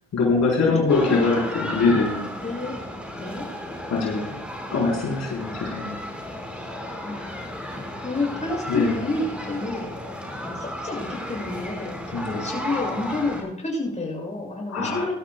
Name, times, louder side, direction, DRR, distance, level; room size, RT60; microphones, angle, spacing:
voice 1, 0.1-2.3 3.9-4.3 4.7-6.0 8.7-9.0 12.1-12.5 14.7-15.0, left 4 dB, 60° left, -4 dB, 4.1 m, -23 dB
voice 2, 0.7-1.2 2.4-2.8 3.1-3.5 7.0-7.3 8.0-9.9 10.4-15.1, left 2 dB, 25° left, -2 dB, 6.5 m, -29 dB
sound 1, 0.9-13.4, equal, 5° right, 4.7 m, -34 dB
21.5 x 12.5 x 2.3 m, 0.74 s
cardioid pair, 90°, 30 cm